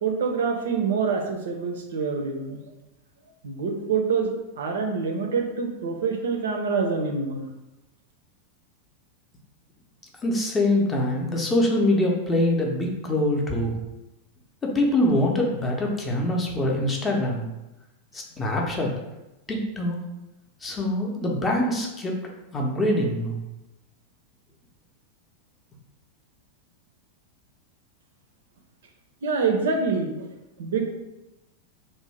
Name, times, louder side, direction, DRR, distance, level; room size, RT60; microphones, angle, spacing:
voice 1, 0.0-2.6 3.4-7.5 29.2-30.3 30.6-30.9, right 5 dB, 60° right, 3 dB, 0.4 m, -26 dB
voice 2, 10.2-13.8 14.6-17.4 18.1-18.9 19.5-20.0 20.6-23.4, left 1 dB, 20° left, 0 dB, 0.5 m, -24 dB
2.5 x 2.1 x 3.1 m, 0.97 s
figure-of-eight pair, 90°, 0 cm